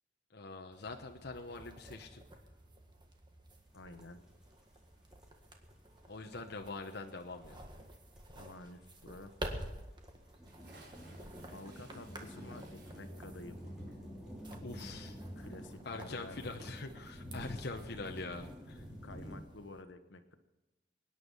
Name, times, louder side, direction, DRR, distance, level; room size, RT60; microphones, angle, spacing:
voice 1, 0.3-2.2 6.1-7.7 14.6-15.2 15.8-18.9, left 3 dB, 60° left, 4 dB, 1.0 m, -44 dB
sound 1, 0.7-19.8, right 1 dB, 25° right, 1.7 m, -51 dB
voice 2, 3.7-4.2 8.3-9.3 11.5-13.9 15.4-16.4 19.0-20.4, left 2 dB, 85° left, 8 dB, 1.3 m, -51 dB
sound 2, 3.7-19.4, equal, 5° right, 3.5 m, -49 dB
Bathtub (filling or washing) / Splash splatter, 10.4-17.0, right 2 dB, 65° right, 4.7 m, -64 dB
23.5 x 10.0 x 5.5 m, 1.1 s
head